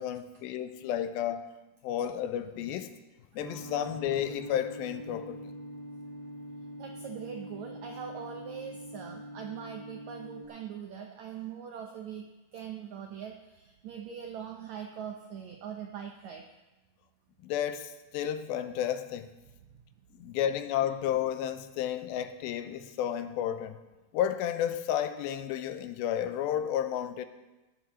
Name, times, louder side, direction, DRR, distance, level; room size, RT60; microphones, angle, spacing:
voice 1, 0.0-1.5 1.8-2.9 3.4-5.5 17.4-19.3 20.2-23.8 24.1-27.3, left 10 dB, 85° left, 2.5 m, -32 dB
sound 1, 3.4-10.5, equal, 60° right, 1.0 m, -44 dB
voice 2, 6.8-16.4 20.1-20.3, right 8 dB, 80° right, 1.6 m, -42 dB
18.5 x 11.5 x 3.1 m
omnidirectional pair, 4.3 m